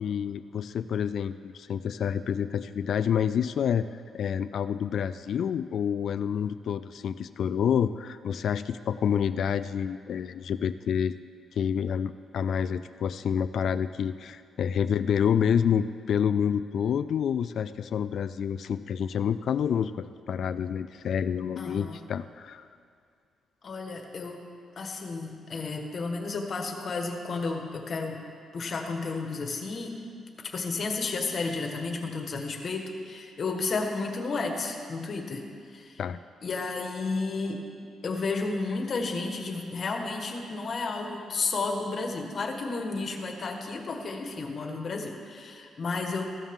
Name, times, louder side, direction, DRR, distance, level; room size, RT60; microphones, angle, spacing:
voice 1, 0.0-3.9 4.1-11.1 11.6-22.6 36.0-36.2, left 8 dB, 60° left, 13 dB, 0.3 m, -28 dB
voice 2, 21.6-22.1 23.6-24.4 24.8-28.2 28.5-30.0 30.4-35.4 35.7-36.0 36.4-37.6 38.0-46.2, left 3 dB, 45° left, 3 dB, 1.4 m, -32 dB
14.5 x 13.0 x 3.7 m, 2.3 s
cardioid pair, 110°, 0 cm